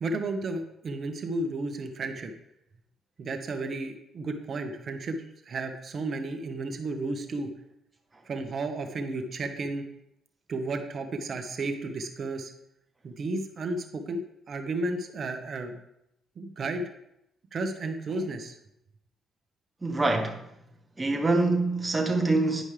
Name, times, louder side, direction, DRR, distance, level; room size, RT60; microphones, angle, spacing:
voice 1, 0.0-2.3 3.2-7.5 8.3-9.8 10.5-12.5 13.0-14.2 14.5-15.8 16.4-16.9 17.5-18.5, right 2 dB, 50° right, 1.0 m, -33 dB
voice 2, 19.8-20.4 21.0-22.6, right 2 dB, 20° right, 1.3 m, -25 dB
10.0 x 5.3 x 3.3 m
cardioid pair, 90°, 0 cm